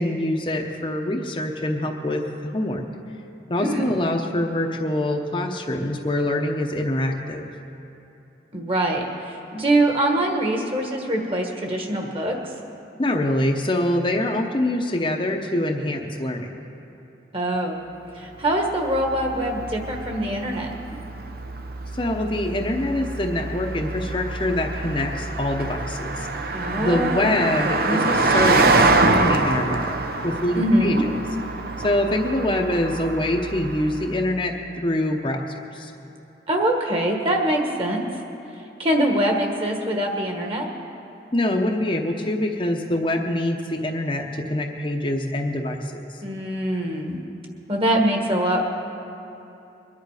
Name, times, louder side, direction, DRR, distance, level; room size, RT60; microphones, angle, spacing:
voice 1, 0.0-2.8 3.5-7.5 13.0-16.5 21.9-26.4 26.8-29.9 30.2-31.1 31.8-35.5 35.7-35.9 41.3-46.0, left 1 dB, 30° left, 2 dB, 0.8 m, -25 dB
voice 2, 8.5-12.4 17.3-17.8 18.1-20.7 26.5-28.0 30.5-31.0 36.5-38.0 38.8-40.7 46.2-47.2 47.7-48.7, right 1 dB, 30° right, 2 dB, 1.6 m, -23 dB
Car passing by, 18.5-34.2, right 3 dB, 55° right, 0.7 m, -25 dB
22.5 x 10.5 x 4.9 m, 3.0 s
head